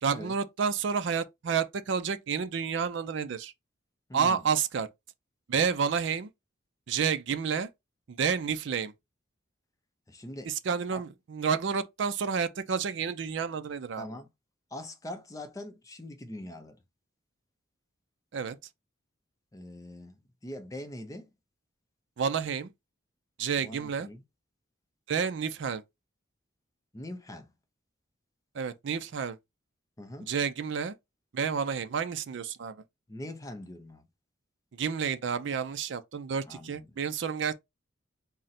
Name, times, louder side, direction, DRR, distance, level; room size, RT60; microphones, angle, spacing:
voice 1, 0.0-3.5 4.1-4.9 5.5-6.3 6.9-7.7 8.1-8.9 10.4-14.1 18.3-18.6 22.2-22.7 23.4-24.1 25.1-25.8 28.5-29.4 30.3-30.9 31.3-32.8 34.8-37.5, right 6 dB, 60° right, 0.4 m, -30 dB
voice 2, 4.1-4.4 10.1-10.5 10.9-11.0 14.0-14.3 14.7-16.8 19.5-20.2 20.4-21.3 23.6-24.2 26.9-27.5 30.0-30.3 33.1-34.1 36.5-37.0, left 1 dB, 15° left, 0.5 m, -42 dB
3.7 x 2.1 x 4.1 m
head